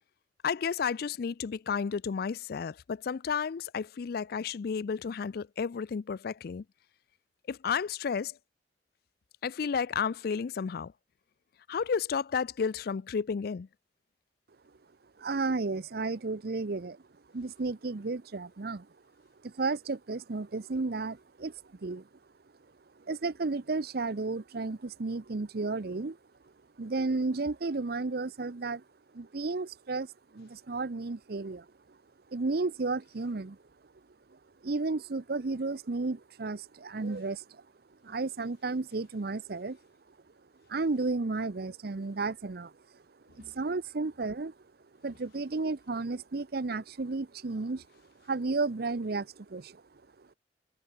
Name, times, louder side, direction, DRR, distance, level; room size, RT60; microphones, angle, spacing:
voice 1, 0.4-6.6 7.5-8.4 9.4-10.9 11.7-13.7 43.4-43.5, left 6 dB, 60° left, 0.4 m, -32 dB
voice 2, 15.2-17.0 17.3-18.9 19.4-21.5 21.8-22.0 23.1-26.2 26.8-28.8 29.1-30.1 30.3-31.6 32.3-33.6 34.6-37.4 38.0-39.8 40.7-42.7 43.5-44.5 45.0-47.8 48.3-49.8, right 3 dB, 60° right, 0.7 m, -33 dB
head